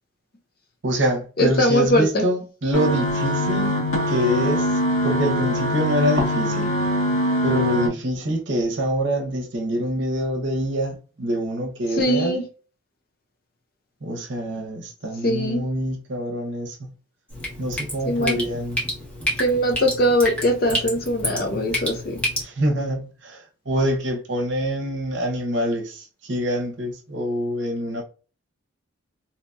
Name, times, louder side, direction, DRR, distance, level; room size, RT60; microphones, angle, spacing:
voice 1, 0.8-3.7 4.1-4.7 5.0-6.7 7.4-12.4 14.0-16.9 17.6-18.9 22.4-28.0, equal, 60° right, 0.7 m, -25 dB
voice 2, 1.4-2.2 11.9-12.5 15.2-15.6 18.0-18.4 19.4-22.2, equal, 45° left, 0.5 m, -21 dB
sound 1, 2.7-7.9, equal, 85° left, 1.3 m, -23 dB
Drip, 17.3-22.4, equal, 5° left, 0.8 m, -29 dB
2.8 x 2.7 x 2.3 m
head